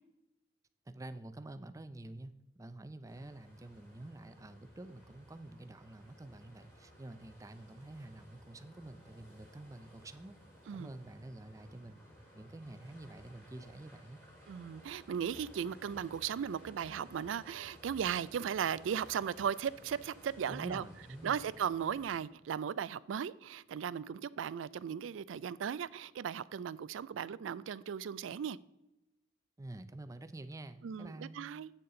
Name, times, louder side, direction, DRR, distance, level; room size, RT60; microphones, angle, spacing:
voice 1, 0.9-10.4 10.7-12.1 12.3-14.2 20.5-21.4 29.6-31.4, right 1 dB, 15° right, 11 dB, 0.5 m, -48 dB
sound 1, 3.1-22.2, equal, 15° left, 2.4 m, -58 dB
voice 2, 14.5-20.8 21.2-28.6 30.8-31.7, right 8 dB, 80° right, 19 dB, 0.3 m, -37 dB
8.4 x 6.8 x 3.8 m, 0.95 s
head